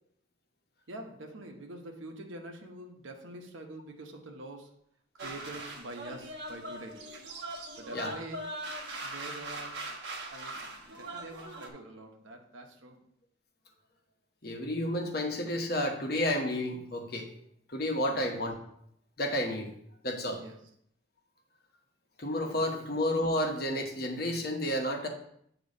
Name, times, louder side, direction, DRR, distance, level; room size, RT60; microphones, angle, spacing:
voice 1, 0.9-4.7 5.2-7.0 7.8-8.5 9.0-9.8 10.3-13.0 18.0-18.3 20.4-20.6, right 1 dB, 90° right, 2 dB, 1.0 m, -45 dB
sound 1, 5.2-11.7, right 2 dB, 60° right, 1.2 m, -41 dB
voice 2, 14.4-17.3 17.7-18.6 19.2-19.7 20.0-20.4 22.2-25.1, left 1 dB, 50° left, 3 dB, 1.1 m, -31 dB
8.9 x 3.0 x 5.2 m, 0.70 s
head